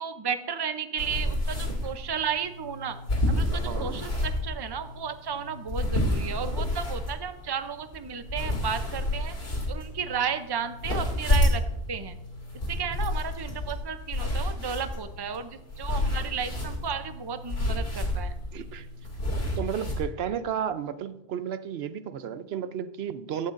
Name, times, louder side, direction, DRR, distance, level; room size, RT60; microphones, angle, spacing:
voice 1, 0.0-3.0 3.3-9.3 9.7-11.6 11.9-12.2 12.7-18.3, right 7 dB, 30° right, 10 dB, 0.6 m, -33 dB
sound 1, 1.0-20.0, left 1 dB, 75° left, 2.9 m, -30 dB
voice 2, 3.6-4.0 18.5-18.9 19.6-23.5, right 8 dB, 80° right, 13 dB, 0.8 m, -33 dB
16.0 x 12.0 x 2.6 m, 0.87 s
omnidirectional pair, 1.0 m